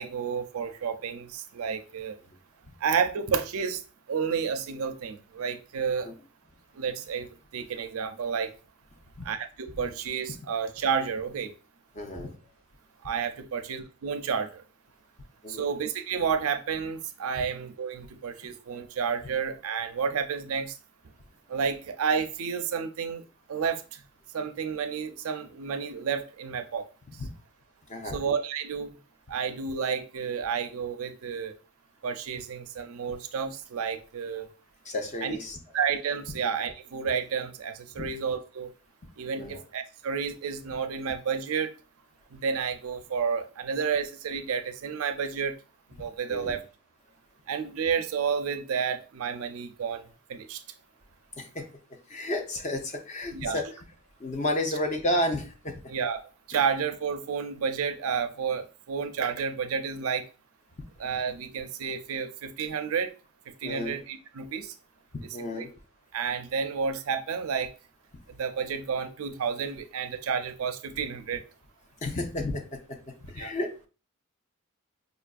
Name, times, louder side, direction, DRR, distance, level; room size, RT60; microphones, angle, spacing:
voice 1, 0.0-2.2 2.8-3.8 4.1-6.1 6.7-7.3 7.5-8.5 9.2-11.5 13.0-14.6 15.5-20.8 21.5-23.2 23.5-24.0 24.3-26.8 28.1-28.9 29.3-31.6 32.0-34.5 35.2-35.4 35.7-38.7 39.2-41.7 42.3-45.5 46.0-46.6 47.5-50.6 53.3-53.6 55.9-56.2 56.5-60.2 61.0-63.1 63.6-64.7 65.6-65.7 66.1-67.7 68.3-71.4 73.4-73.5, right 6 dB, 75° right, 0.4 m, -31 dB
voice 2, 11.9-12.3 15.4-15.7 27.2-27.3 27.9-28.2 34.9-35.6 38.0-38.1 39.4-39.6 46.3-46.6 51.4-51.7 52.1-53.7 54.2-55.8 63.6-64.0 65.3-65.7 72.0-73.9, left 1 dB, 30° left, 0.5 m, -32 dB
5.0 x 2.4 x 2.3 m
head